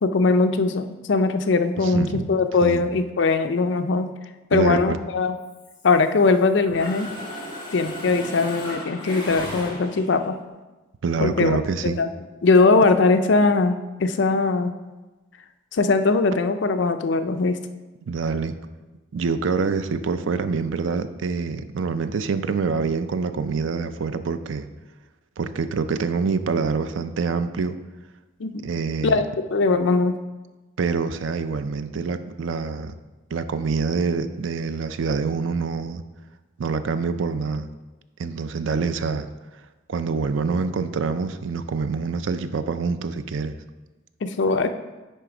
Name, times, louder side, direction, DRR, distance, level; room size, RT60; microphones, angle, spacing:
voice 1, 0.0-4.1 4.5-5.4 5.8-7.1 7.7-10.4 11.2-11.6 11.8-12.1 12.4-14.7 15.7-17.6 28.4-28.7 29.0-30.1 44.2-44.7, left 3 dB, 60° left, 8 dB, 0.5 m, -20 dB
voice 2, 1.8-2.3 2.6-2.8 4.5-5.0 11.0-12.0 18.1-18.5 19.1-24.7 25.4-27.7 28.6-29.2 30.8-32.9 33.3-36.0 36.6-37.7 38.2-39.3 39.9-43.5, right 4 dB, 70° right, 11 dB, 0.4 m, -26 dB
Mechanisms, 5.5-6.4 6.7-10.2, left 1 dB, 20° left, 1.4 m, -35 dB
10.0 x 3.4 x 4.9 m, 1.2 s
head